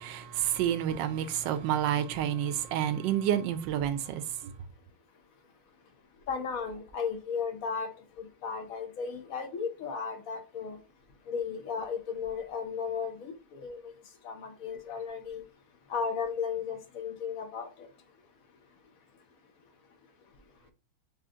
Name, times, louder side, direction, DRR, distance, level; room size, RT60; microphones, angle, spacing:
voice 1, 0.0-4.2, right 10 dB, 70° right, 1.2 m, -29 dB
voice 2, 6.3-7.9 8.2-10.8 11.3-13.9 14.2-15.4 15.9-17.9, left 6 dB, 60° left, 0.9 m, -35 dB
5.0 x 2.7 x 3.6 m
omnidirectional pair, 2.2 m